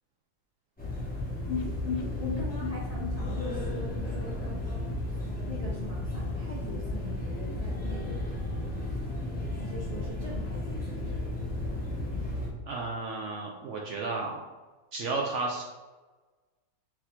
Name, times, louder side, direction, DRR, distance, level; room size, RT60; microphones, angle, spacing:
FL-Miami-Westin-Conference-Hallway-Room-tone, 0.8-12.5, left 1 dB, 5° left, 0.7 m, -33 dB
sound 1, 1.5-5.3 5.6-5.7 6.0-6.1, left 5 dB, 85° left, 1.3 m, -38 dB
voice 1, 2.2-5.2 5.5-9.1 9.6-11.8, left 1 dB, 70° left, -6 dB, 0.3 m, -43 dB
voice 2, 12.7-14.4 14.9-15.6, right 3 dB, 75° right, -1 dB, 0.7 m, -33 dB
4.2 x 2.7 x 4.3 m, 1.2 s
omnidirectional pair, 1.9 m